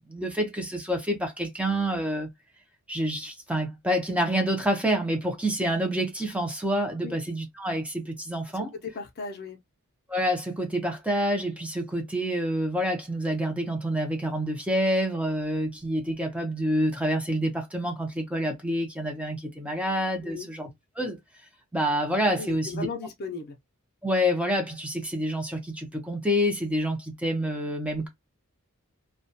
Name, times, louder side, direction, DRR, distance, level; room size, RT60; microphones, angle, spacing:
voice 1, 0.1-2.3 2.9-8.7 10.1-20.7 21.0-21.2 21.7-22.9 24.0-28.1, equal, 5° right, 0.6 m, -27 dB
voice 2, 8.5-9.6 20.2-20.5 22.4-23.5, left 4 dB, 45° left, 0.5 m, -37 dB
2.3 x 2.2 x 2.6 m
head